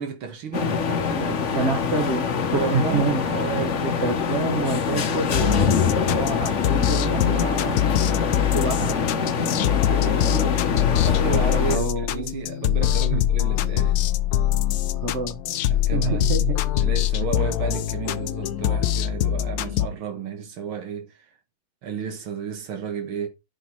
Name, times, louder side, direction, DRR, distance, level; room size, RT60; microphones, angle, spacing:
voice 1, 0.0-1.7 2.5-3.9 7.3-7.9 8.3-8.7 9.7-14.0 15.7-16.3 16.8-21.4 21.8-23.3, right 6 dB, 75° right, 2.2 m, -32 dB
sound 1, 0.5-11.8, left 6 dB, 50° left, 1.0 m, -24 dB
voice 2, 1.5-3.2 4.0-7.4 8.5-9.1 11.7-12.3 13.1-13.2 14.9-15.4 15.9-16.6 17.2-17.5, right 3 dB, 40° right, 1.1 m, -27 dB
sound 2, 5.3-19.9, left 11 dB, 90° left, 0.8 m, -23 dB
10.0 x 5.3 x 4.4 m
omnidirectional pair, 2.3 m